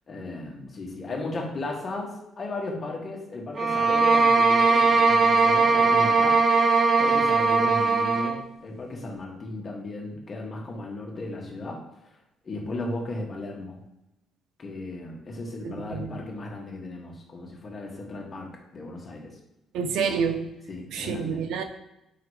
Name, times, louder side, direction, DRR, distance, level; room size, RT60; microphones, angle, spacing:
voice 1, 0.1-6.4 7.0-11.8 12.4-13.8 14.6-19.4 20.7-21.4, left 2 dB, 30° left, 0 dB, 1.4 m, -35 dB
sound 1, 3.5-8.4, right 4 dB, 35° right, 0.6 m, -20 dB
voice 2, 15.6-16.1 19.7-20.4 20.9-21.6, right 6 dB, 80° right, 7 dB, 0.7 m, -28 dB
5.0 x 3.8 x 4.9 m, 0.87 s
cardioid pair, 145°, 0 cm